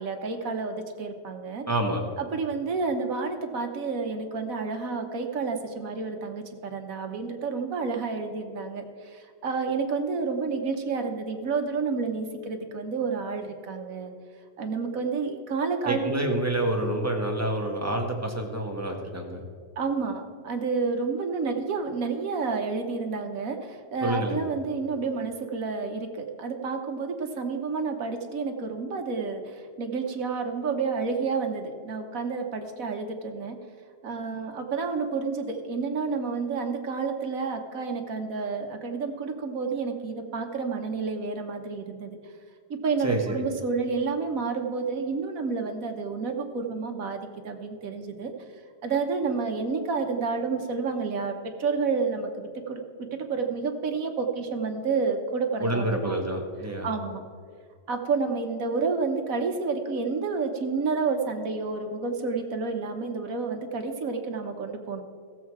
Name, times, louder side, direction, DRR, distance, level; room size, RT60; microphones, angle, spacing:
voice 1, 0.0-1.7 2.2-14.1 14.6-16.0 19.8-33.6 34.0-42.2 42.7-48.3 48.8-56.2 56.8-57.2 57.9-65.0, right 4 dB, 50° right, 4 dB, 1.3 m, -30 dB
voice 2, 1.7-2.1 15.8-19.4 24.0-24.4 43.0-43.4 55.6-56.9, right 1 dB, 10° right, 1 dB, 1.0 m, -28 dB
16.0 x 7.5 x 4.7 m, 2.1 s
omnidirectional pair, 2.0 m